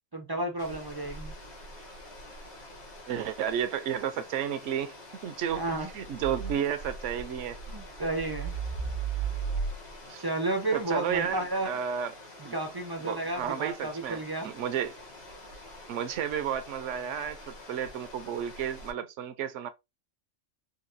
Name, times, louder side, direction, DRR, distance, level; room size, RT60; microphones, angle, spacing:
voice 1, 0.1-1.3 5.5-5.9 7.7-8.5 10.2-11.7 12.5-14.5, right 2 dB, 40° right, 0.3 m, -32 dB
sound 1, 0.6-18.9, right 4 dB, 60° left, 1.3 m, -41 dB
voice 2, 3.1-4.9 5.2-5.6 5.9-7.6 10.1-10.2 10.7-12.1 12.4-12.5 13.0-14.9 15.9-19.7, right 9 dB, 75° right, 0.9 m, -32 dB
3.9 x 2.3 x 2.6 m
omnidirectional pair, 1.3 m